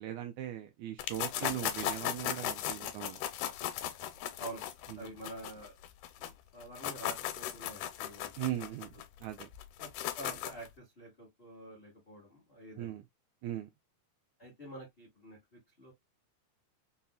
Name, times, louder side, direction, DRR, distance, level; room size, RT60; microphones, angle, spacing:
voice 1, 0.0-3.2 4.9-5.1 8.4-9.5 12.8-13.0 13.4-13.7, right 12 dB, 80° right, 1.7 m, -39 dB
sound 1, 1.0-6.3 6.6-10.7, left 11 dB, 80° left, 1.9 m, -37 dB
voice 2, 4.9-5.7 6.2-8.3 9.8-13.0 14.4-15.9, right 1 dB, 60° left, 0.6 m, -48 dB
5.4 x 2.1 x 2.3 m
omnidirectional pair, 3.7 m